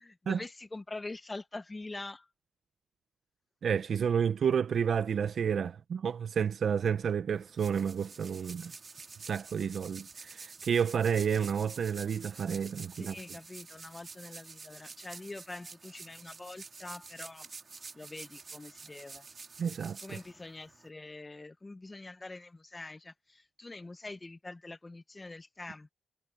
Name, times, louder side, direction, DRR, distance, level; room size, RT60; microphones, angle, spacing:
voice 1, 0.0-2.3 12.9-17.5 17.9-19.2 20.0-25.9, left 2 dB, 25° left, 1.5 m, -45 dB
voice 2, 3.6-8.7 9.2-13.1 19.6-20.2, right 7 dB, 70° right, 1.0 m, -30 dB
sound 1, 7.3-20.9, right 4 dB, 50° right, 2.7 m, -49 dB
cardioid pair, 55°, 0 cm